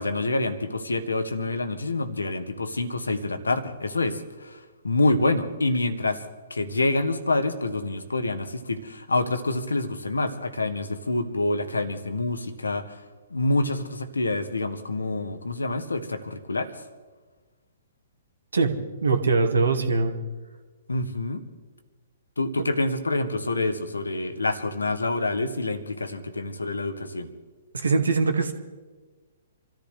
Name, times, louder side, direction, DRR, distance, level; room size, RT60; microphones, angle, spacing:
voice 1, 0.0-13.0 13.3-16.8 20.9-21.4 22.4-27.3, left 2 dB, 80° left, 10 dB, 1.5 m, -27 dB
voice 2, 19.0-20.2 27.7-28.5, right 4 dB, 75° right, 5 dB, 2.0 m, -22 dB
27.0 x 14.0 x 3.4 m, 1.3 s
figure-of-eight pair, 120°, 0 cm